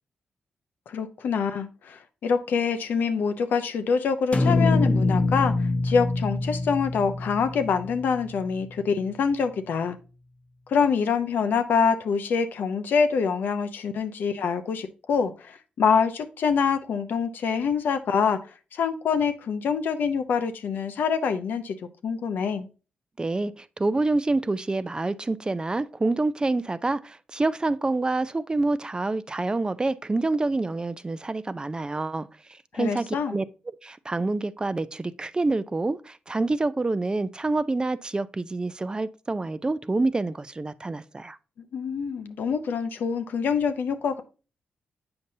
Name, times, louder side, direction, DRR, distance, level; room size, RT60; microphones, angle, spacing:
voice 1, 0.9-10.0 10.7-18.4 18.7-21.8 22.0-22.7 32.7-33.4 41.7-44.2, left 6 dB, 75° left, 0.6 m, -25 dB
sound 1, 4.3-8.5, left 3 dB, 45° left, 0.8 m, -25 dB
voice 2, 23.2-32.3 32.7-33.4 33.8-41.4, right 2 dB, 25° right, 0.4 m, -27 dB
7.8 x 5.3 x 2.7 m
supercardioid pair, 50°, 3 cm